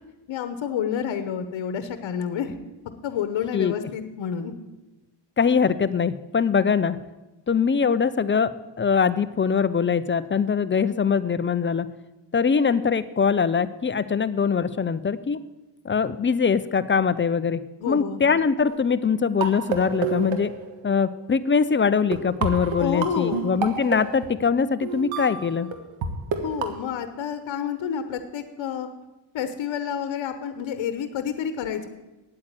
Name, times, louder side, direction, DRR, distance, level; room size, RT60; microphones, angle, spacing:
voice 1, 0.3-2.5 3.0-4.5 17.8-18.2 22.8-23.7 26.4-28.9 29.3-31.9, left 8 dB, 80° left, 9 dB, 1.0 m, -29 dB
voice 2, 5.4-7.0 7.5-8.5 8.8-11.9 12.3-15.4 15.8-17.6 17.9-20.5 20.8-25.7, left 6 dB, 25° left, 14 dB, 0.5 m, -22 dB
sound 1, 18.7-21.1 21.8-21.9 22.1-26.1 26.3-26.7, right 6 dB, 90° right, 1.5 m, -30 dB
8.9 x 8.7 x 8.9 m, 1.1 s
cardioid pair, 100°, 45 cm